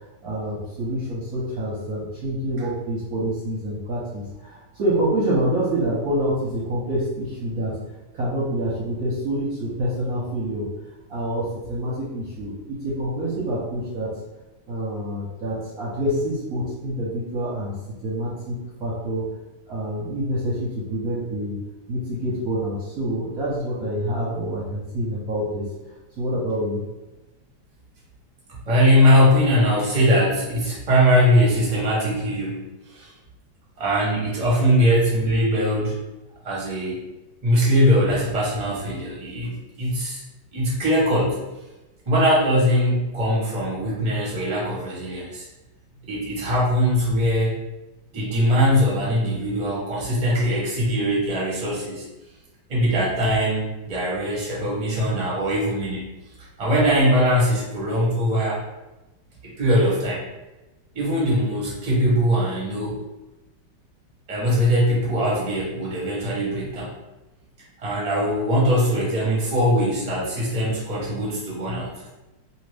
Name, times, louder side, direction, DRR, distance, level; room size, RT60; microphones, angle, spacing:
voice 1, 0.2-7.8 8.1-10.7 11.1-14.1 14.7-19.3 19.7-21.6 21.9-25.7 26.2-26.8, right 1 dB, 60° right, -7 dB, 1.0 m, -27 dB
voice 2, 28.7-33.1 33.8-36.0 36.4-37.0 37.4-40.2 40.5-41.4 42.1-45.5 46.0-47.5 48.1-52.0 52.7-56.0 56.6-58.6 59.4-60.2 60.9-63.0 64.3-66.9 67.8-72.1, equal, 25° right, -6 dB, 0.8 m, -21 dB
2.7 x 2.7 x 3.3 m, 1.1 s
omnidirectional pair, 2.0 m